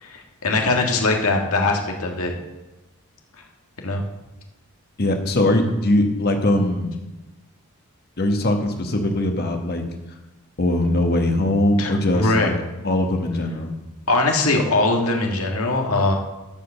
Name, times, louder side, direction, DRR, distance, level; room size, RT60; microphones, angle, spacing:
voice 1, 0.0-2.3 3.8-4.0 11.8-12.5 14.1-16.1, left 2 dB, 80° left, 2 dB, 1.8 m, -21 dB
voice 2, 5.0-6.9 8.2-9.8 10.6-12.5 12.8-13.7, left 1 dB, 45° left, 4 dB, 1.4 m, -21 dB
12.5 x 5.2 x 6.7 m, 1.1 s
head